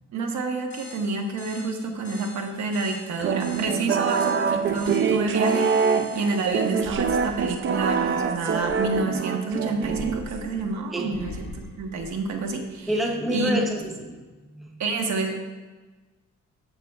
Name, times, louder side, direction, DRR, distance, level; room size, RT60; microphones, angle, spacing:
voice 1, 0.1-12.9 13.3-13.5 14.8-15.3, right 3 dB, 55° right, 3 dB, 1.1 m, -29 dB
sound 1, 0.7-7.9, left 2 dB, 25° left, 1.5 m, -46 dB
sound 2, 3.2-10.6, right 6 dB, 40° right, 0.4 m, -25 dB
sound 3, 6.8-9.2 9.8-12.9 13.3-13.8, left 3 dB, 40° left, 1.5 m, -41 dB
voice 2, 12.9-14.2 14.5-14.8, equal, ahead, 1 dB, 0.7 m, -27 dB
14.0 x 5.8 x 2.3 m, 1.3 s
cardioid pair, 155°, 32 cm